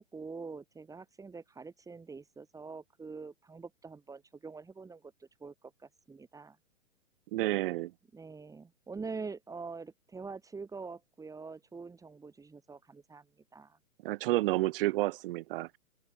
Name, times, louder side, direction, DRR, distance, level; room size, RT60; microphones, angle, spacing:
voice 1, 0.0-6.6 8.1-13.3 13.5-13.8, right 4 dB, 10° right, 7.8 m, -45 dB
voice 2, 7.3-7.9 14.0-15.8, right 18 dB, 40° right, 6.3 m, -30 dB
open air
hypercardioid pair, 130°, 41 cm